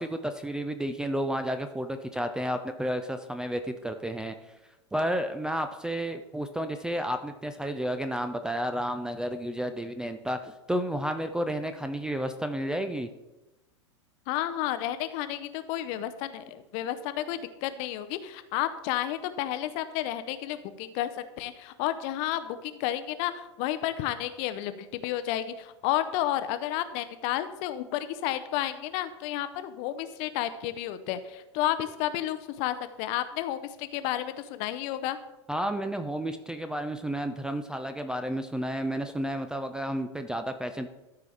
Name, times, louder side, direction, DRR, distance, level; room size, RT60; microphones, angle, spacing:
voice 1, 0.0-4.3 4.9-13.1 35.5-40.9, equal, 5° right, 8 dB, 0.3 m, -31 dB
voice 2, 14.3-21.1 21.4-35.2, left 13 dB, 40° left, 12 dB, 0.6 m, -31 dB
13.5 x 4.7 x 3.4 m, 1.0 s
figure-of-eight pair, 90°, 16 cm